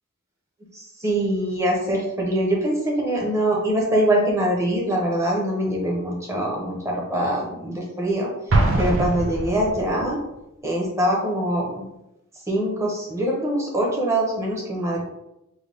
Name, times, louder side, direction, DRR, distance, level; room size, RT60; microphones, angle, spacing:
voice 1, 0.7-8.3 8.8-10.2 10.6-11.9 12.5-15.0, right 1 dB, 15° right, -2 dB, 0.8 m, -23 dB
Explosion, 8.5-10.1, right 2 dB, 65° right, 0.6 m, -22 dB
3.8 x 2.1 x 3.4 m, 0.89 s
head